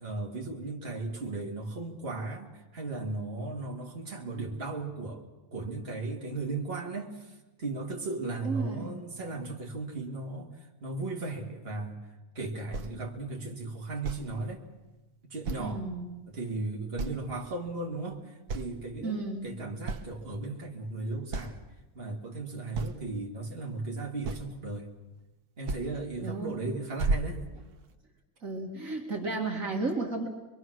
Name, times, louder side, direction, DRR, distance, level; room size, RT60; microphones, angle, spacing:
voice 1, 0.0-5.2 5.5-14.6 15.3-15.8 16.3-21.6 21.9-24.9 25.6-27.4, right 3 dB, 40° right, 0 dB, 2.6 m, -36 dB
voice 2, 8.4-8.9 15.5-16.1 19.0-19.5 26.2-26.7 28.4-30.3, right 3 dB, 55° right, 0 dB, 2.5 m, -33 dB
sound 1, 12.7-12.9 14.0-14.3 15.4-15.8 16.3-16.4 17.0-17.3 17.7-18.1 18.5-18.8 19.5-19.6 19.9-20.1 20.9-21.0 21.3-21.6 22.7-23.0 24.2-24.6 25.7-25.9 26.3-26.6 27.0-27.9, right 3 dB, 75° right, 1.6 m, -33 dB
24.5 x 23.5 x 6.4 m, 1.1 s
omnidirectional pair, 1.7 m